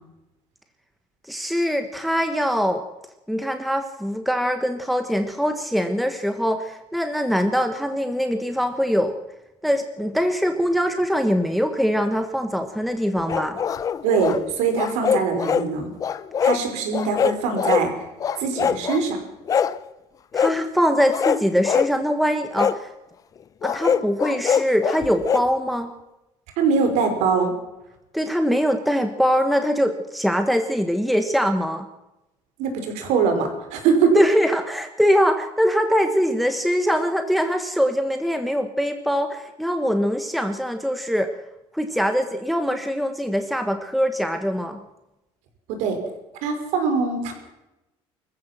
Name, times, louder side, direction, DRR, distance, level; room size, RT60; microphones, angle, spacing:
voice 1, 1.3-2.8 3.3-9.2 9.6-13.6 20.3-22.9 23.6-25.9 28.1-31.9 34.1-41.3 41.7-44.8, equal, ahead, 6 dB, 1.3 m, -22 dB
sound 1, 13.3-14.4 14.7-15.7 16.0-16.6 16.9-17.9 18.2-19.0 19.5-19.8 20.3-20.6 21.1-21.9 22.6-22.8 23.6-25.5, left 7 dB, 30° left, 0.9 m, -23 dB
voice 2, 14.0-15.9 16.4-17.9 18.4-19.2 26.6-27.5 32.6-34.1 45.8-46.0 46.4-47.3, right 5 dB, 85° right, 5 dB, 5.6 m, -22 dB
24.5 x 15.0 x 7.6 m, 0.95 s
cardioid pair, 160°, 11 cm